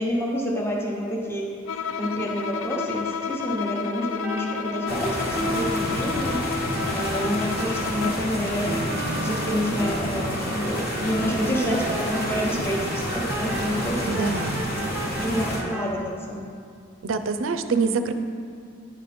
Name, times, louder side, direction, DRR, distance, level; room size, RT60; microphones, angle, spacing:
voice 1, 0.0-6.4 6.9-14.2 15.2-16.5, equal, 10° left, -2 dB, 0.9 m, -28 dB
Bowed string instrument, 1.7-8.3, left 6 dB, 75° left, 0.3 m, -32 dB
sound 1, 4.1-16.0, right 2 dB, 10° right, 0.5 m, -35 dB
sound 2, 4.9-15.6, equal, 45° left, 1.3 m, -29 dB
voice 2, 14.1-14.7 17.0-18.1, right 4 dB, 75° right, 9 dB, 0.5 m, -25 dB
10.5 x 5.1 x 4.2 m, 2.3 s
head